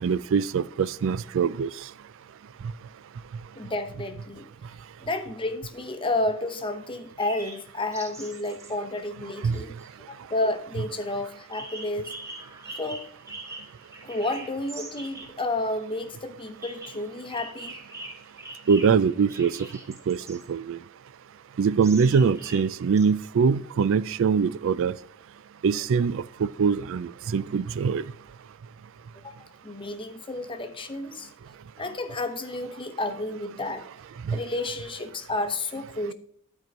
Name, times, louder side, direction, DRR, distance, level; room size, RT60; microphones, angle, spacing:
voice 1, 0.0-1.7 9.4-9.6 18.7-19.6 20.1-20.8 21.6-24.9 25.6-28.0 34.3-34.4, right 6 dB, 65° right, 18 dB, 0.3 m, -23 dB
voice 2, 3.6-4.5 5.0-9.7 10.1-12.1 12.8-13.0 14.0-17.8 29.2-31.3 31.8-33.9 34.3-36.1, left 2 dB, 25° left, 9 dB, 0.8 m, -31 dB
sound 1, 7.0-8.7 9.2-9.9 11.5-15.3 15.7-15.8 16.6-20.5 21.8-23.0, right 2 dB, 15° right, 1.3 m, -42 dB
12.0 x 4.6 x 5.3 m, 0.67 s
head